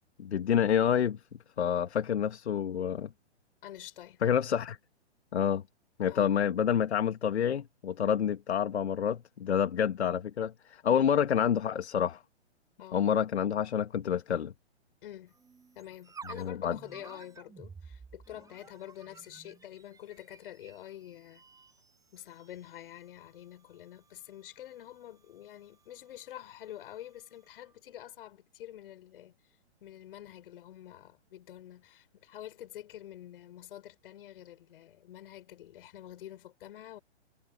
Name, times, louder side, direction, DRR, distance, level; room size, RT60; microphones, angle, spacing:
voice 1, 0.2-1.2 1.6-3.1 4.2-4.8 5.3-5.6 6.0-12.2 12.9-14.5 16.4-16.8, left 8 dB, 70° left, 1.8 m, -28 dB
voice 2, 3.6-4.2 6.1-6.4 9.7-9.8 10.9-11.1 12.8-13.1 15.0-15.4 15.7-21.4 22.1-29.4 29.8-37.0, left 12 dB, 55° left, 6.5 m, -47 dB
sound 1, 15.3-27.8, right 5 dB, 10° right, 7.6 m, -54 dB
hypercardioid pair, 130°, 34 cm